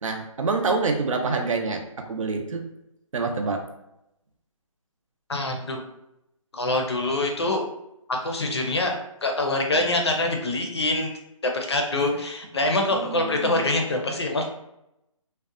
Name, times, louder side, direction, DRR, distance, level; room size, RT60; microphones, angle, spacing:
voice 1, 0.0-2.6 3.1-3.6 12.9-13.8, right 4 dB, 70° right, 3 dB, 0.5 m, -27 dB
voice 2, 5.3-5.8 6.5-7.6 8.1-9.0 9.2-11.1 11.4-14.4, left 2 dB, 50° left, 2 dB, 0.5 m, -25 dB
2.6 x 2.1 x 2.4 m, 0.84 s
hypercardioid pair, 175°, 18 cm